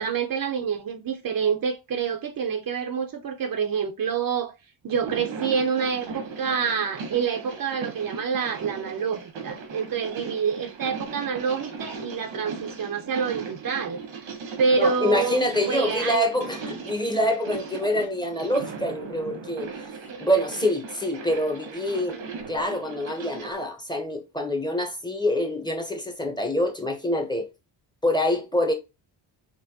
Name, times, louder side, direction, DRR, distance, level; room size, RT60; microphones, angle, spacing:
voice 1, 0.0-4.5 4.8-14.3 14.6-16.3 20.1-20.3, right 6 dB, 45° right, 0.7 m, -27 dB
sound 1, 4.9-23.5, right 5 dB, 85° right, 1.4 m, -38 dB
voice 2, 14.8-19.9 20.2-22.2 22.5-27.5 28.0-28.7, left 1 dB, 10° left, 0.8 m, -26 dB
4.4 x 2.1 x 2.7 m
cardioid pair, 100°, 47 cm